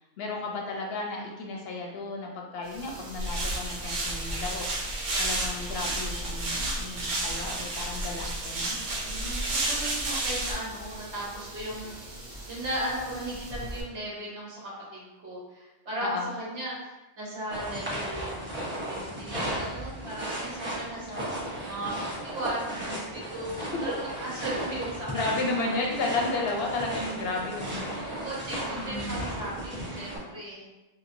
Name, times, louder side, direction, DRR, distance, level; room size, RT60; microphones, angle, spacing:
voice 1, 0.2-4.7 5.2-8.8 16.0-16.3 23.6-23.7 25.1-28.2 28.7-29.2, left 3 dB, 60° left, -1 dB, 0.8 m, -33 dB
sound 1, 2.6-13.8, right 1 dB, 50° right, 0.4 m, -43 dB
sound 2, 3.2-10.5, right 2 dB, 85° right, 1.1 m, -31 dB
voice 2, 9.0-12.0 12.4-14.6 14.9-18.3 18.9-21.2 21.6-25.2 25.5-25.6 27.9-30.6, right 1 dB, 65° right, -7 dB, 1.4 m, -36 dB
sound 3, 17.5-30.2, right 1 dB, 10° right, 0.7 m, -35 dB
3.1 x 2.9 x 2.6 m, 1.0 s
omnidirectional pair, 1.2 m